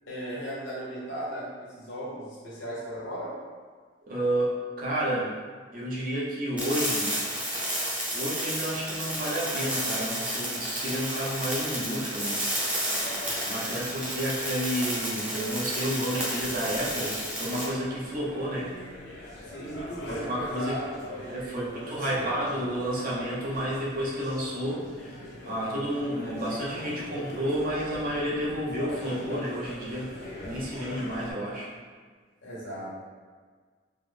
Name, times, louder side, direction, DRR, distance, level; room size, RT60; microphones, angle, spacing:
voice 1, 0.1-3.4 19.4-22.4 32.4-32.9, equal, 85° left, -6 dB, 1.0 m, -37 dB
voice 2, 4.0-5.3 5.7-7.2 8.1-12.4 13.4-18.7 20.1-20.8 21.3-31.7, equal, 45° right, -5 dB, 0.7 m, -31 dB
sound 1, 6.6-17.6, equal, 5° right, 0.6 m, -31 dB
sound 2, 13.0-31.3, left 1 dB, 60° left, 0.5 m, -43 dB
3.4 x 2.1 x 3.3 m, 1.5 s
head